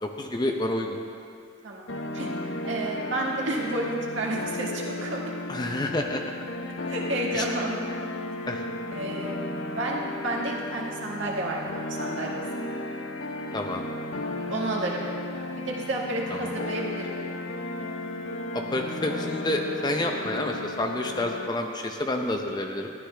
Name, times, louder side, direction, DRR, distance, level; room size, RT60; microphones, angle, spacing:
voice 1, 0.0-1.0 5.5-6.2 7.3-7.4 8.5-8.7 13.5-13.8 16.3-16.5 18.5-22.9, left 1 dB, 20° left, 3 dB, 0.6 m, -29 dB
sound 1, 1.9-21.5, left 1 dB, 80° left, 0.8 m, -34 dB
voice 2, 2.7-5.3 6.9-7.9 8.9-9.4 9.7-12.7 14.5-15.1 15.5-17.1, right 1 dB, 70° right, -2 dB, 1.7 m, -31 dB
13.5 x 11.0 x 3.4 m, 2.3 s
head